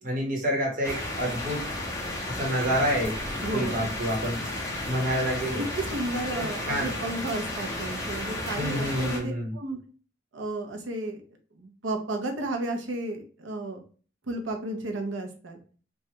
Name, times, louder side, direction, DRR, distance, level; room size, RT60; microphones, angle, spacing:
voice 1, 0.0-1.6 2.3-3.2 3.5-4.5 4.8-5.6 6.4-6.9 8.6-9.5, equal, 45° right, -1 dB, 1.1 m, -28 dB
sound 1, 0.8-9.2, left 1 dB, 15° left, 0.7 m, -33 dB
voice 2, 3.4-3.9 5.6-9.8 10.3-11.2 11.5-13.8 14.3-15.6, right 2 dB, 85° right, 4 dB, 0.7 m, -33 dB
3.2 x 2.3 x 2.8 m, 0.40 s
head